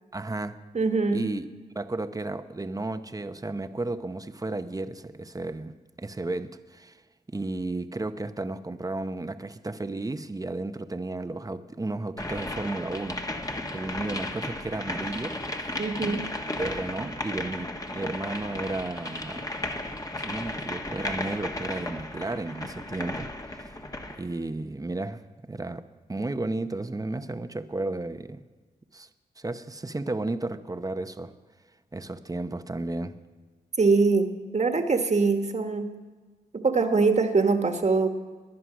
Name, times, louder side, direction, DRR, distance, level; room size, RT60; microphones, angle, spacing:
voice 1, 0.1-0.6 1.1-7.0 7.3-13.2 13.7-15.4 16.0-16.3 16.6-19.4 20.2-23.3 23.6-23.8 24.2-25.8 26.1-28.4 28.9-29.1 29.4-31.3 31.9-33.2, right 2 dB, 20° right, 10 dB, 0.9 m, -33 dB
voice 2, 0.7-1.3 15.8-16.3 33.8-36.0 36.5-38.1, right 4 dB, 40° right, 6 dB, 1.6 m, -23 dB
sound 1, 12.2-24.2, left 1 dB, 20° left, 1.4 m, -34 dB
19.5 x 11.0 x 6.1 m, 1.4 s
cardioid pair, 70°, 17 cm